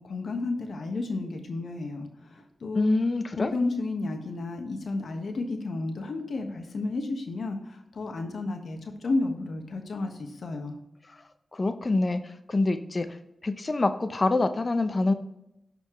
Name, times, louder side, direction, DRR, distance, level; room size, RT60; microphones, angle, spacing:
voice 1, 0.0-2.9 3.4-10.7, left 3 dB, 75° left, 4 dB, 1.2 m, -32 dB
voice 2, 2.7-3.5 11.1-11.2 11.5-13.1 13.4-15.1, left 2 dB, 45° left, 9 dB, 0.7 m, -26 dB
12.0 x 4.3 x 3.1 m, 0.86 s
cardioid pair, 55°, 0 cm